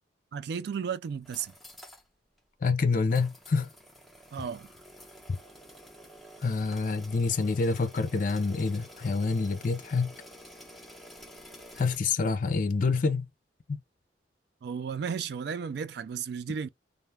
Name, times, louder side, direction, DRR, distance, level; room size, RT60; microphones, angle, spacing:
voice 1, 0.3-1.5 4.3-4.7 14.6-16.7, right 6 dB, 60° right, 0.3 m, -34 dB
sound 1, 1.1-2.1 2.4-2.5 3.1-12.0, equal, ahead, 0.8 m, -50 dB
voice 2, 2.6-3.7 5.3-5.4 6.4-10.1 11.8-13.3 13.7-13.8, left 4 dB, 45° left, 0.4 m, -27 dB
2.4 x 2.3 x 3.1 m
head